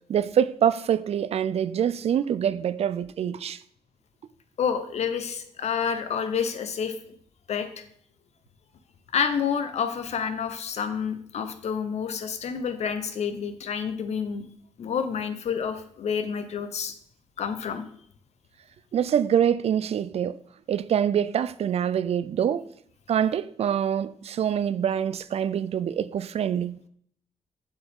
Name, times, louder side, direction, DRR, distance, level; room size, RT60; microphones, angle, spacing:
voice 1, 0.1-3.6 18.9-20.4 20.7-22.7 23.1-26.8, right 9 dB, 60° right, 0.4 m, -25 dB
voice 2, 4.6-7.0 7.5-7.9 9.1-14.4 14.8-16.9 17.4-17.8, left 7 dB, 70° left, 0.9 m, -29 dB
7.8 x 7.1 x 3.6 m
cardioid pair, 105°, 12 cm